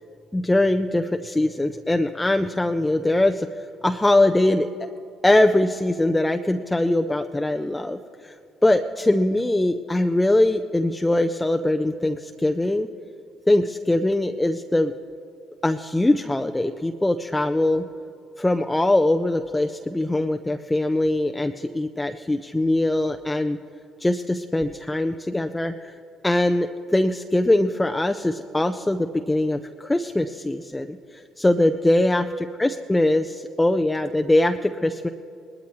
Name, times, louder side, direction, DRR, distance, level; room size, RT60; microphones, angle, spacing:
voice 1, 0.3-4.7 5.2-8.4 8.6-12.9 13.5-14.9 15.6-17.9 18.4-23.6 24.0-25.9 26.2-32.3 32.6-35.1, left 1 dB, 15° left, 6 dB, 0.5 m, -22 dB
20.0 x 12.5 x 3.1 m, 2.6 s
hypercardioid pair, 55°, 0 cm